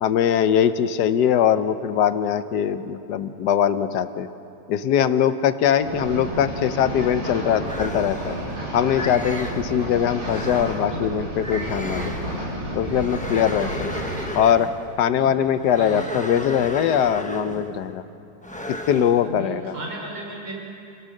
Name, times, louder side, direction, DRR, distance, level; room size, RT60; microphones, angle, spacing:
voice 1, 0.0-4.3 4.7-8.3 8.7-12.1 12.7-13.9 14.3-14.7 15.0-18.0 18.9-19.8, left 9 dB, 65° left, 12 dB, 1.2 m, -21 dB
sound 1, 5.8-14.3, right 1 dB, 85° right, 8.0 m, -31 dB
sound 2, 7.7-8.5 8.9-9.7 10.2-10.8 11.4-12.4 12.9-14.8 15.6-17.8 18.4-19.2, left 1 dB, 5° left, 0.6 m, -34 dB
voice 2, 15.7-16.1 19.1-20.5, right 1 dB, 65° right, -1 dB, 5.3 m, -35 dB
28.5 x 17.5 x 6.5 m, 2.6 s
omnidirectional pair, 2.3 m